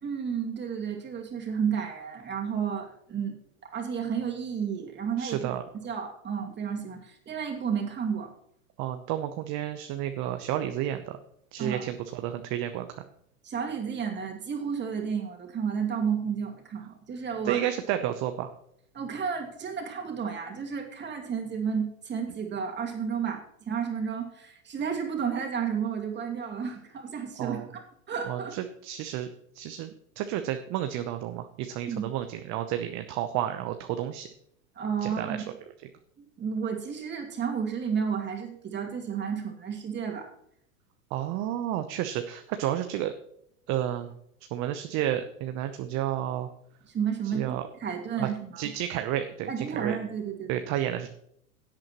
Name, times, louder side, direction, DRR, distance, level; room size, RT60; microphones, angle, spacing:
voice 1, 0.0-3.4 3.6-5.5 5.8-8.3 11.6-11.9 13.4-17.6 18.9-27.6 28.1-28.6 31.9-32.0 34.8-35.4 36.2-40.3 46.9-48.6 49.5-50.6, right 7 dB, 25° right, 1 dB, 2.5 m, -32 dB
voice 2, 5.2-5.6 8.8-11.2 11.5-13.0 17.4-18.5 27.4-27.7 28.2-29.9 30.2-34.3 35.0-35.4 41.1-43.1 43.7-44.1 44.5-46.5 47.3-47.6 48.2-48.3 48.6-50.0 50.5-51.1, right 12 dB, 40° right, 8 dB, 0.8 m, -31 dB
16.5 x 8.7 x 3.1 m, 0.71 s
hypercardioid pair, 105°, 42 cm